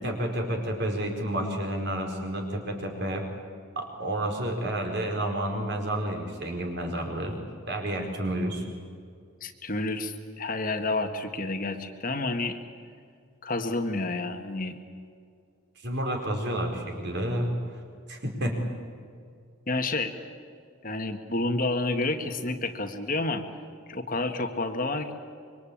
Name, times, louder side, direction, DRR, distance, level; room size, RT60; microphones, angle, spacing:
voice 1, 0.0-3.3 3.7-7.3 7.7-8.6 15.8-17.5 18.1-18.6, right 1 dB, 50° right, 3 dB, 4.7 m, -30 dB
voice 2, 9.4-12.6 13.4-14.7 19.7-20.1 20.8-23.4 23.9-25.1, left 2 dB, 40° left, 6 dB, 1.6 m, -29 dB
26.0 x 23.5 x 8.8 m, 2.2 s
head